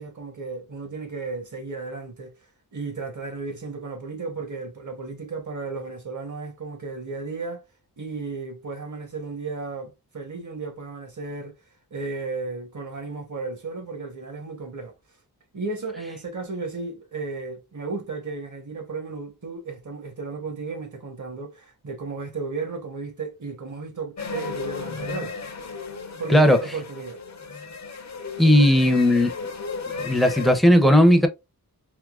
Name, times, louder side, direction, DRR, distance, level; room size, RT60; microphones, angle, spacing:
voice 1, 0.0-2.3 2.7-7.6 8.0-11.5 11.9-14.9 15.5-25.4 26.2-27.2, right 4 dB, 50° right, 1.1 m, -34 dB
sound 1, 24.2-30.5, left 4 dB, 45° left, 0.7 m, -34 dB
voice 2, 26.3-26.6 28.4-29.3 30.0-31.3, left 1 dB, ahead, 0.6 m, -16 dB
3.6 x 2.8 x 2.3 m
wide cardioid pair, 65°, 38 cm